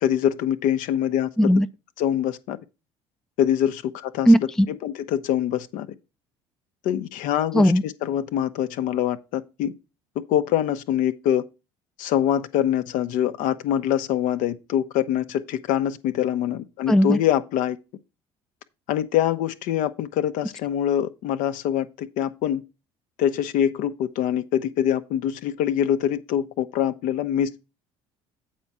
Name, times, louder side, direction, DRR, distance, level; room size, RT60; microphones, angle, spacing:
voice 1, 0.0-1.5 2.0-2.6 3.4-4.3 4.7-5.9 6.8-9.7 10.3-11.4 12.0-17.8 18.9-22.6 23.2-27.5, left 10 dB, 65° left, 0.7 m, -24 dB
voice 2, 4.3-4.7 7.5-7.8 16.9-17.2, equal, 5° left, 0.4 m, -16 dB
8.2 x 4.3 x 6.0 m
hypercardioid pair, 65°, 14 cm